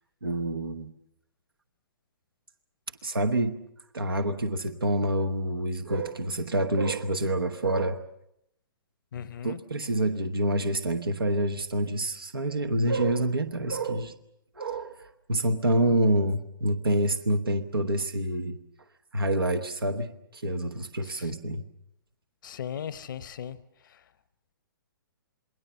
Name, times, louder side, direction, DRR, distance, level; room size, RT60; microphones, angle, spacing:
voice 1, 0.2-0.9 3.0-3.6 3.9-8.0 9.4-14.1 14.5-18.6 19.1-21.7, right 1 dB, 90° right, 1.3 m, -27 dB
voice 2, 9.1-9.6 21.1-21.3 22.4-23.6, left 8 dB, 65° left, 0.9 m, -37 dB
28.0 x 20.5 x 7.0 m
hypercardioid pair, 125°, 12 cm